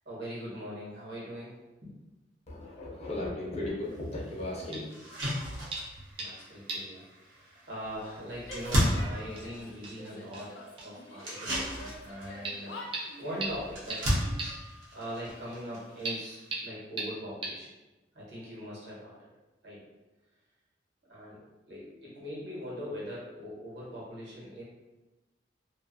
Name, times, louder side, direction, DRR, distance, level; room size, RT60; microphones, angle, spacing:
voice 1, 0.0-2.0 6.2-10.5 10.8-12.8 13.2-17.7 18.1-19.3 19.6-19.8 21.1-24.6, equal, 60° right, -6 dB, 1.0 m, -41 dB
voice 2, 2.5-4.9, left 1 dB, 35° left, -4 dB, 0.6 m, -36 dB
sound 1, 3.9-4.0 4.4-4.5 4.9-16.6, equal, 85° right, 0.8 m, -35 dB
sound 2, 4.7-4.9 5.2-5.4 5.7-6.4 6.7-6.9 7.2-7.3 8.4-8.5 8.9-9.0 9.4-9.5 9.8-10.0 10.3-10.5 10.8-10.9 12.4-12.5 12.9-13.0 13.4-13.5 13.9-14.0 14.4-14.5 16.0-16.2 16.5-16.6 17.0-17.1 17.4-17.5, right 3 dB, 30° right, 0.4 m, -36 dB
Female speech woman speaking / Yell, 8.4-9.7 9.9-11.4 11.7-13.6, left 2 dB, 85° left, 0.4 m, -47 dB
2.5 x 2.3 x 2.5 m, 1.1 s
head